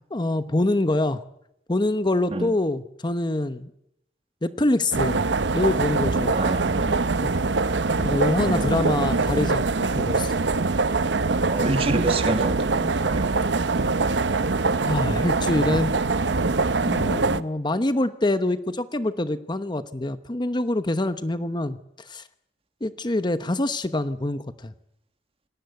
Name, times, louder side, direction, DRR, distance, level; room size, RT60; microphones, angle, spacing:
voice 1, 0.1-1.2 1.7-3.7 4.4-5.2 5.5-6.4 7.2-7.4 7.9-9.7 10.0-10.3 14.9-16.0 16.8-21.8 22.1-22.2 22.8-24.7, left 1 dB, 25° left, 1.0 m, -25 dB
sound 1, 4.9-17.4, right 3 dB, 85° right, 0.9 m, -23 dB
voice 2, 6.3-7.0 8.4-9.2 11.5-13.3, right 2 dB, 35° right, 2.0 m, -28 dB
28.0 x 19.5 x 8.1 m
head